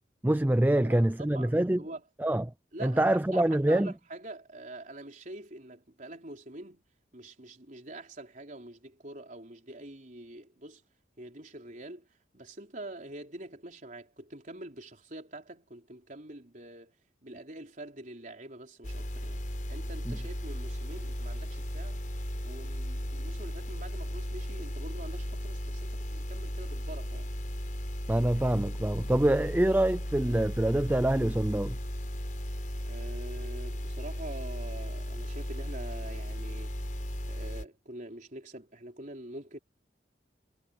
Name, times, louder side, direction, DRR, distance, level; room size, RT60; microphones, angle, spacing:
voice 1, 0.2-1.8 2.2-2.4 2.8-3.9 20.1-20.2 28.1-31.8, right 1 dB, 10° right, 0.4 m, -25 dB
voice 2, 0.8-2.0 2.7-6.8 7.1-10.8 11.2-16.9 17.2-19.4 19.7-22.0 22.4-27.3 32.9-36.7 37.3-39.6, right 1 dB, 45° right, 4.3 m, -45 dB
sound 1, 18.8-37.6, equal, 45° left, 5.6 m, -36 dB
head